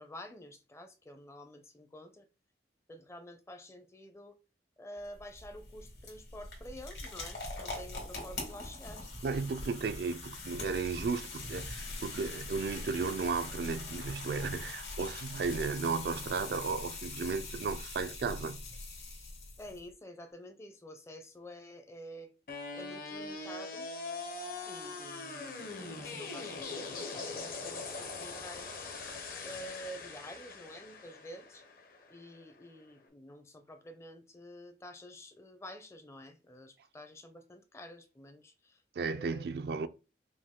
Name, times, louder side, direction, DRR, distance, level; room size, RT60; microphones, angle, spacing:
voice 1, 0.0-2.3 2.9-4.4 4.8-9.1 19.6-22.3 22.7-23.9 24.7-28.9 29.4-31.6 32.1-38.8 39.1-39.4, equal, 15° left, 0.5 m, -49 dB
sound 1, 5.0-19.8, left 3 dB, 70° left, 1.9 m, -43 dB
voice 2, 9.2-18.6 39.0-39.9, right 4 dB, 60° right, 0.3 m, -34 dB
sound 2, 22.5-32.5, left 3 dB, 50° left, 0.8 m, -42 dB
5.2 x 2.2 x 3.6 m
head